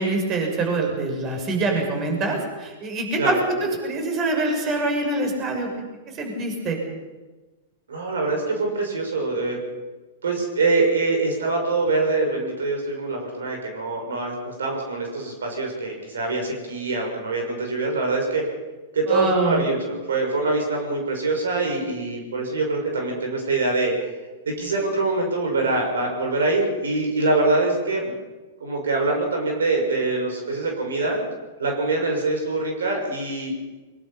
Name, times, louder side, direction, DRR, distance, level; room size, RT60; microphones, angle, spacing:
voice 1, 0.0-5.7 6.2-6.8 19.1-19.6, right 2 dB, 35° right, 2 dB, 6.4 m, -25 dB
voice 2, 7.9-9.6 10.2-18.4 18.9-24.1 24.5-28.1 28.6-31.2 31.6-33.5, right 3 dB, 80° right, 2 dB, 6.2 m, -24 dB
22.5 x 22.5 x 5.9 m, 1.2 s
hypercardioid pair, 110°, 0 cm